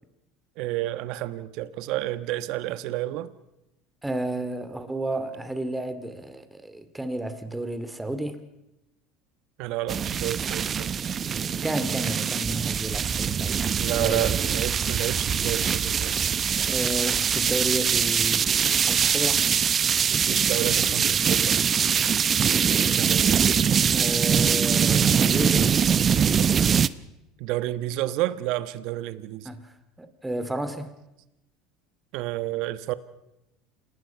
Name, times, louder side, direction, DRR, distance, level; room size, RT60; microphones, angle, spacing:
voice 1, 0.6-3.3 9.6-11.1 13.8-16.2 20.3-21.6 22.9-23.3 27.4-29.5 32.1-33.0, right 15 dB, 65° right, 1.2 m, -30 dB
voice 2, 4.0-8.4 11.6-13.6 14.0-14.2 16.6-19.4 23.9-25.7 29.4-29.7 30.0-30.9, right 1 dB, 10° right, 2.5 m, -31 dB
sound 1, 9.9-26.9, right 7 dB, 35° right, 0.7 m, -23 dB
28.0 x 19.5 x 5.8 m
supercardioid pair, 95°, 0 cm